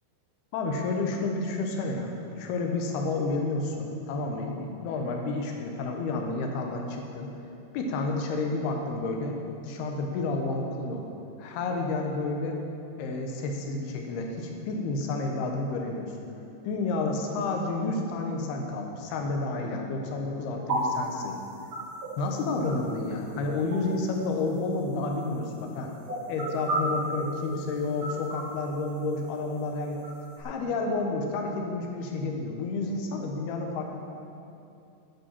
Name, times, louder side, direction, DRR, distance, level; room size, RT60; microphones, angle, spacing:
voice 1, 0.5-7.3 7.7-11.0 11.4-12.6 13.0-16.1 16.6-21.4 22.2-25.9 26.3-30.0 30.4-33.9, left 3 dB, 70° left, 2 dB, 2.9 m, -30 dB
sound 1, 20.7-30.4, right 1 dB, 50° right, 4.0 m, -36 dB
9.8 x 8.6 x 7.5 m, 2.7 s
omnidirectional pair, 5.1 m